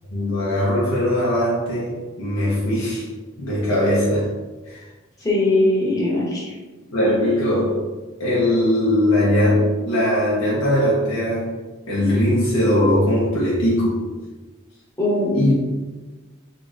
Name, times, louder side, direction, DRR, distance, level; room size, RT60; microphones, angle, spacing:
voice 1, 0.1-3.1 3.4-4.3 4.6-4.9 6.9-7.9 8.2-11.5 11.9-14.0 15.3-15.5, left 1 dB, 90° left, -7 dB, 0.9 m, -20 dB
voice 2, 5.2-6.5 15.0-15.4, left 2 dB, 15° left, -6 dB, 1.0 m, -20 dB
3.9 x 2.5 x 3.4 m, 1.3 s
head